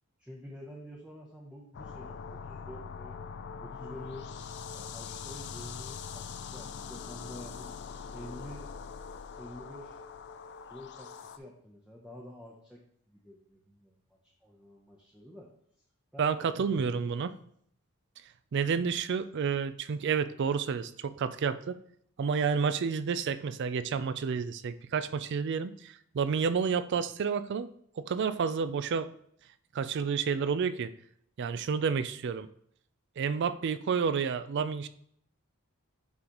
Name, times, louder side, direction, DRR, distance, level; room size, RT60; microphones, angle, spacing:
voice 1, 0.2-3.2 3.6-4.3 4.7-7.7 8.1-8.7 9.4-10.0 10.7-15.5 16.1-17.1, left 1 dB, 5° right, -3 dB, 0.7 m, -48 dB
sound 1, 1.7-11.4, left 6 dB, 50° left, 0.4 m, -42 dB
voice 2, 16.2-17.3 18.5-21.8 22.2-27.7 28.0-29.1 29.7-30.9 31.4-32.5 33.2-34.9, right 6 dB, 55° right, 13 dB, 0.4 m, -30 dB
9.6 x 3.9 x 3.0 m, 0.67 s
head